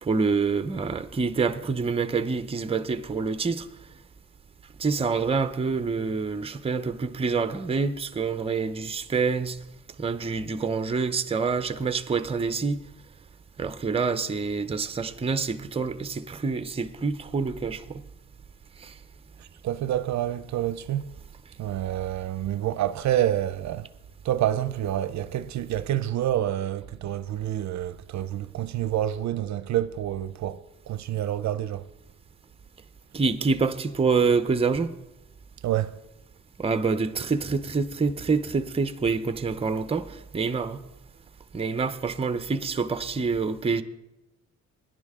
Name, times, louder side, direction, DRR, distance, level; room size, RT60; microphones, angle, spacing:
voice 1, 0.0-3.7 4.8-9.6 10.0-12.8 13.6-18.0 18.8-18.9 33.1-34.9 36.6-40.8 41.5-43.8, right 4 dB, 20° right, 0.7 m, -26 dB
voice 2, 19.4-21.1 21.6-23.9 24.2-31.9 35.6-36.0, right 12 dB, 65° right, 0.6 m, -28 dB
23.5 x 10.5 x 3.6 m
cardioid pair, 130°, 30 cm